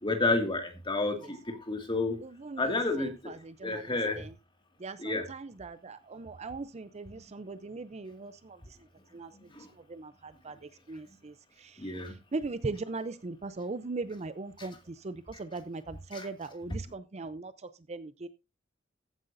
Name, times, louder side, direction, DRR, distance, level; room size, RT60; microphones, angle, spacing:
voice 1, 0.0-2.2 2.6-3.3 3.6-4.2 5.0-5.3 9.6-9.7 11.8-12.1 14.6-14.7 16.1-16.3, left 2 dB, 25° left, 5 dB, 2.1 m, -30 dB
voice 2, 2.2-3.8 4.2-4.3 4.8-8.6 9.1-9.3 9.9-10.5 10.9-11.3 12.3-14.7 15.0-17.5 17.9-18.3, right 3 dB, 35° right, 13 dB, 0.5 m, -39 dB
14.5 x 9.7 x 2.6 m, 0.26 s
head